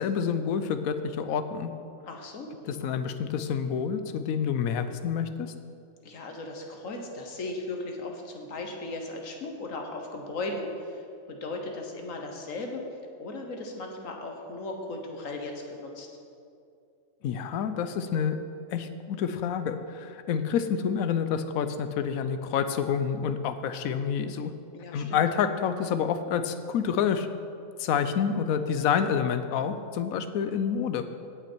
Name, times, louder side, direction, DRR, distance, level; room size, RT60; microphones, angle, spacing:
voice 1, 0.0-1.7 2.6-5.5 17.2-18.4 18.7-24.5 24.9-27.3 27.8-31.0, left 7 dB, 90° left, 10 dB, 1.1 m, -28 dB
voice 2, 2.1-2.6 6.0-11.0 11.3-12.8 13.2-16.1 24.7-25.2, left 2 dB, 70° left, 2 dB, 1.6 m, -37 dB
17.0 x 5.8 x 4.5 m, 2.5 s
omnidirectional pair, 1.5 m